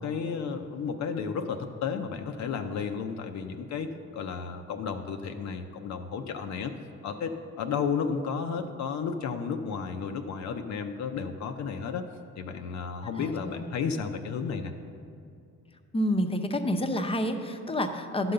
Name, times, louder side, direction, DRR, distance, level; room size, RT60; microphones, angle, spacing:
voice 1, 0.0-6.7 7.0-12.1 12.4-14.7, left 6 dB, 65° left, 5 dB, 0.6 m, -33 dB
voice 2, 13.1-13.6 15.9-18.3, left 1 dB, 20° left, 7 dB, 0.7 m, -29 dB
11.5 x 3.9 x 6.7 m, 2.4 s
cardioid pair, 90°, 30 cm